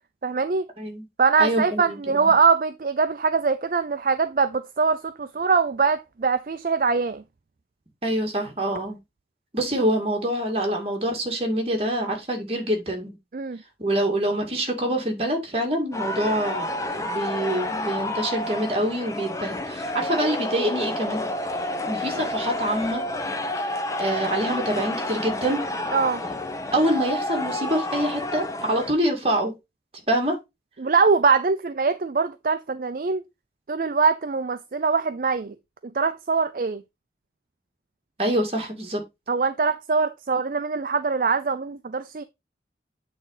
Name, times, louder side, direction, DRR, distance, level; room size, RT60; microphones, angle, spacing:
voice 1, 0.2-0.6 1.2-7.2 13.3-13.6 25.9-26.2 30.8-33.2 33.7-35.5 35.9-36.8 39.3-42.2, right 5 dB, 50° right, 0.4 m, -22 dB
voice 2, 1.4-2.3 8.0-9.0 9.5-13.1 13.8-21.3 21.9-23.0 24.0-25.6 26.7-29.5 30.1-30.4 38.2-39.0, right 1 dB, 35° right, 2.3 m, -25 dB
sound 1, 15.9-28.9, left 1 dB, 20° left, 0.9 m, -30 dB
8.5 x 3.8 x 4.8 m
head